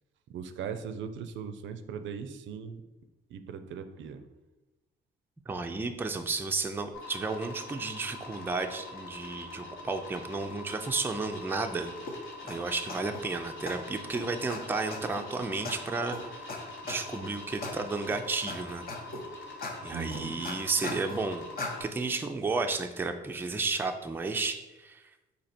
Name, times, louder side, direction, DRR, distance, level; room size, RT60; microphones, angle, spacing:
voice 1, 0.3-2.8 3.3-4.3 19.9-20.4, right 6 dB, 70° right, 9 dB, 0.4 m, -39 dB
voice 2, 5.5-11.9 12.4-16.5 16.8-18.8 19.8-21.5 21.8-25.0, right 3 dB, 10° right, 5 dB, 0.4 m, -32 dB
sound 1, 6.9-21.8, left 2 dB, 70° left, 1.2 m, -44 dB
sound 2, 12.1-12.2 12.5-12.6 12.9-13.2 13.7-13.8 14.1-14.2 14.5-14.6 14.9-15.2 15.6-15.7 16.1-16.2 16.5-16.6 16.9-17.2 17.6-17.7 18.1-18.6 18.9-19.2 19.6-19.7 20.1-21.2 21.6-21.7, left 3 dB, 50° left, 0.8 m, -37 dB
4.2 x 2.8 x 4.1 m, 1.0 s
cardioid pair, 90°, 20 cm